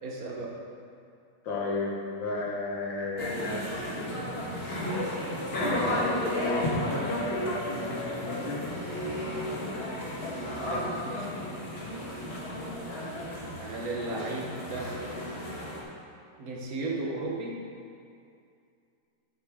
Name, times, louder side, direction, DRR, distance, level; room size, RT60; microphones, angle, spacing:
voice 1, 0.0-0.6 10.6-11.3 13.6-15.0 16.4-17.6, right 2 dB, 55° right, -1 dB, 1.3 m, -35 dB
voice 2, 1.4-4.1 5.5-8.7 12.9-13.1, left 3 dB, 85° left, -2 dB, 2.0 m, -33 dB
sound 1, 3.2-15.8, left 1 dB, 35° left, 1.4 m, -33 dB
8.9 x 7.7 x 3.5 m, 2.4 s
omnidirectional pair, 2.0 m